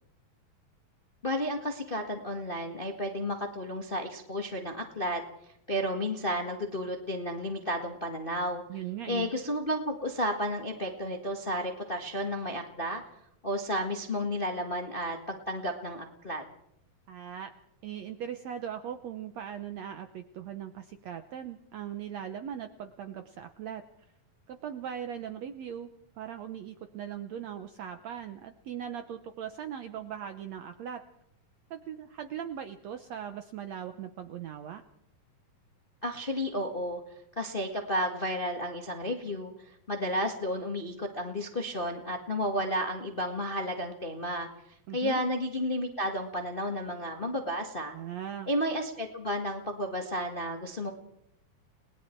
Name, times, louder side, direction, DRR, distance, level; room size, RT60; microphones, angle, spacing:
voice 1, 1.2-5.2 5.7-8.6 9.1-13.0 13.4-16.4 36.0-37.0 37.4-44.5 44.9-47.9 48.5-50.9, equal, 55° left, 3 dB, 0.6 m, -32 dB
voice 2, 8.7-9.3 17.1-17.5 17.8-23.8 24.5-25.9 26.2-31.0 31.7-34.8 44.9-45.2 47.9-48.5, right 9 dB, 70° right, 7 dB, 1.7 m, -39 dB
30.0 x 20.0 x 4.5 m, 0.79 s
omnidirectional pair, 4.0 m